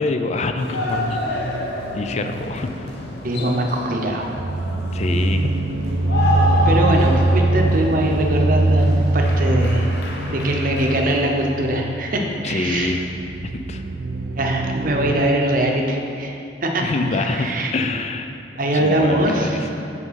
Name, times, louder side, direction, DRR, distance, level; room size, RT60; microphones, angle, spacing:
voice 1, 0.0-1.4 1.9-2.9 4.9-5.5 12.4-13.1 13.4-13.8 16.8-18.3 18.7-19.6, left 3 dB, 35° left, 7 dB, 0.4 m, -25 dB
sound 1, 0.6-11.3, left 1 dB, 60° left, 0.9 m, -29 dB
sound 2, 1.3-15.1, right 2 dB, 85° right, 0.5 m, -23 dB
voice 2, 3.2-4.3 6.7-10.0 10.3-12.9 14.4-16.4 16.6-16.8 17.1-17.9 18.6-19.7, right 1 dB, 50° right, 1 dB, 0.8 m, -22 dB
6.1 x 5.3 x 5.6 m, 2.7 s
head